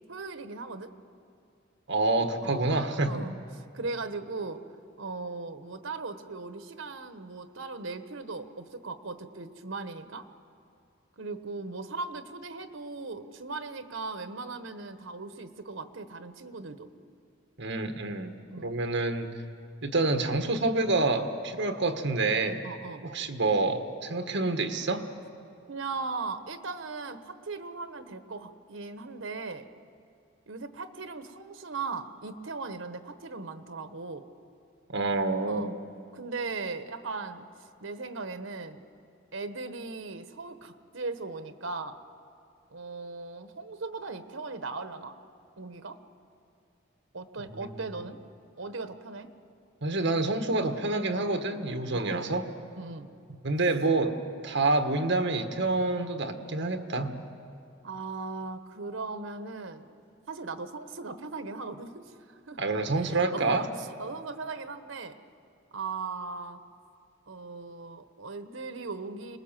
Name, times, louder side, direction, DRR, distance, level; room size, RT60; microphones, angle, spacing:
voice 1, 0.1-0.9 2.4-2.7 3.0-4.6 5.0-10.3 11.2-16.9 18.5-18.7 22.6-23.0 25.7-29.7 30.5-34.3 35.4-35.7 36.1-37.5 37.8-38.8 39.3-42.0 42.7-45.1 45.6-46.0 47.1-48.2 48.6-49.3 51.9-52.3 52.8-53.1 57.8-59.9 60.3-62.6 63.0-65.2 65.7-66.6 67.3-69.4, right 3 dB, 80° right, 10 dB, 1.2 m, -38 dB
voice 2, 1.9-3.1 17.6-18.3 18.6-19.3 19.8-22.6 23.0-25.1 34.9-35.7 47.5-47.7 49.8-52.5 53.4-54.2 54.4-57.1 62.6-63.7, right 2 dB, 65° right, 6 dB, 1.6 m, -27 dB
26.5 x 20.0 x 7.5 m, 2.5 s
head